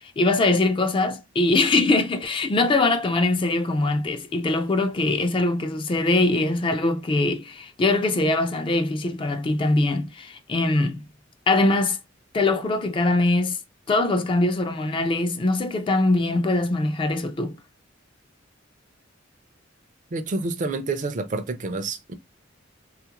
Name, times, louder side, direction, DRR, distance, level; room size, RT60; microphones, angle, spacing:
voice 1, 0.0-11.0 11.5-12.0 12.3-13.6 13.9-17.6, left 2 dB, 25° left, 0.3 m, -22 dB
voice 2, 20.1-22.1, right 3 dB, 40° right, 0.4 m, -28 dB
3.5 x 2.4 x 2.8 m
head